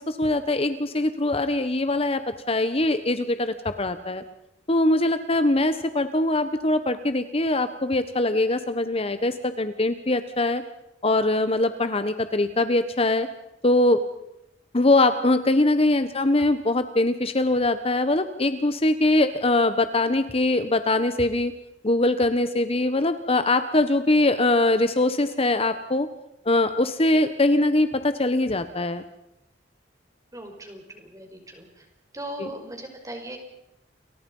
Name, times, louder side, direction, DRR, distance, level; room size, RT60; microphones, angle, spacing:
voice 1, 0.0-2.2 2.5-4.2 4.7-10.6 11.0-13.3 13.6-14.0 14.7-21.5 21.8-26.1 26.4-29.0 32.4-32.5, left 2 dB, 35° left, 10 dB, 1.2 m, -22 dB
voice 2, 30.3-31.8 32.1-33.4, right 1 dB, 20° right, 3 dB, 5.6 m, -38 dB
29.5 x 23.5 x 5.5 m, 0.87 s
head